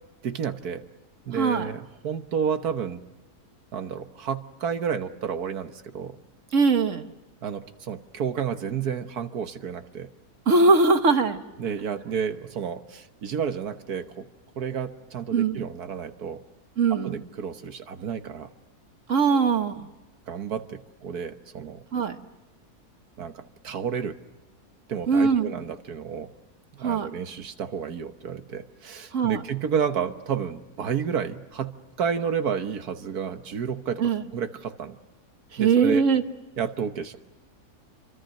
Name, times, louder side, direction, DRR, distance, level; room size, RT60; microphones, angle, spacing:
voice 1, 0.2-0.8 1.3-3.0 3.7-6.2 7.4-10.1 11.6-14.3 14.6-16.4 17.0-18.5 19.3-19.5 20.3-21.8 23.2-24.2 24.9-26.3 26.8-35.0 35.6-36.0 36.6-37.2, right 7 dB, 70° right, 8 dB, 1.6 m, -31 dB
voice 2, 1.3-1.7 6.5-7.1 10.5-11.4 15.3-15.6 16.8-17.2 19.1-19.8 21.9-22.2 25.1-25.6 26.8-27.1 29.1-29.4 34.0-34.2 35.5-36.2, right 4 dB, 50° right, 8 dB, 1.6 m, -21 dB
28.0 x 24.5 x 6.5 m, 1.1 s
omnidirectional pair, 1.7 m